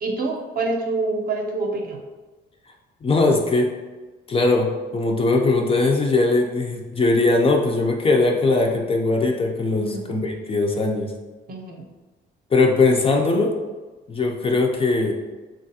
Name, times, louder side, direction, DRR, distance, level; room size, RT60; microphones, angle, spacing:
voice 1, 0.0-2.0 9.7-10.1 11.5-11.8, right 3 dB, 45° right, 1 dB, 0.6 m, -26 dB
voice 2, 3.0-3.7 4.3-11.1 12.5-13.6 14.1-15.1, left 3 dB, 30° left, 1 dB, 0.4 m, -20 dB
3.3 x 2.4 x 2.7 m, 1.2 s
cardioid pair, 90°, 20 cm